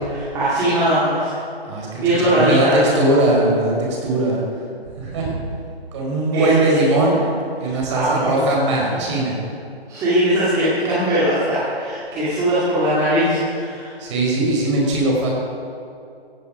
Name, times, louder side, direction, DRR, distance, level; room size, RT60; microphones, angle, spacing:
voice 1, 0.0-1.4 2.0-3.0 6.3-6.9 7.6-8.5 8.8-9.1 9.9-13.9, equal, 10° right, -11 dB, 2.7 m, -20 dB
voice 2, 1.6-2.7 3.0-3.8 4.0-4.4 5.0-5.3 5.9-7.2 7.6-9.3 14.0-15.3, right 2 dB, 30° right, -2 dB, 4.4 m, -19 dB
16.0 x 15.5 x 5.1 m, 2.5 s
hypercardioid pair, 165°, 32 cm